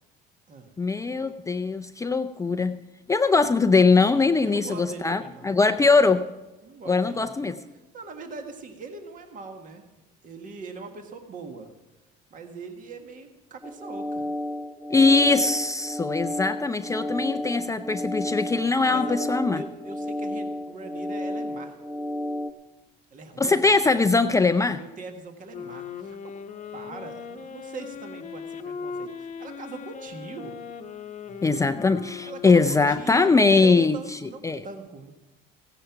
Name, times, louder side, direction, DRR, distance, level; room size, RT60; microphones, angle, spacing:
voice 1, 0.8-2.8 3.1-6.2 6.9-7.6 14.9-19.6 23.4-24.8 31.4-34.2 34.4-34.6, left 4 dB, 15° left, 9 dB, 0.5 m, -21 dB
voice 2, 4.4-5.5 6.6-7.6 7.9-9.8 10.2-11.7 12.3-14.3 18.9-19.2 19.6-21.8 23.1-23.6 24.8-26.3 26.7-30.6 31.3-31.5 32.2-35.1, right 3 dB, 40° right, 5 dB, 1.6 m, -41 dB
sound 1, 13.6-22.5, left 1 dB, 5° right, 0.9 m, -32 dB
sound 2, 25.5-33.2, left 6 dB, 35° left, 1.0 m, -39 dB
16.0 x 9.9 x 5.8 m, 1.0 s
cardioid pair, 110°, 20 cm